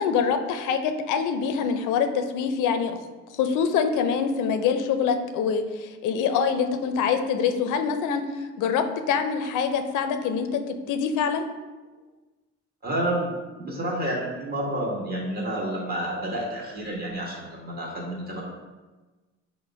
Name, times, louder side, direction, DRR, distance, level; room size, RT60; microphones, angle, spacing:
voice 1, 0.0-3.0 3.3-11.5, left 6 dB, 90° left, 7 dB, 0.5 m, -25 dB
voice 2, 12.8-18.4, right 1 dB, 30° right, -4 dB, 1.4 m, -29 dB
5.0 x 2.1 x 4.6 m, 1.2 s
cardioid pair, 90°, 30 cm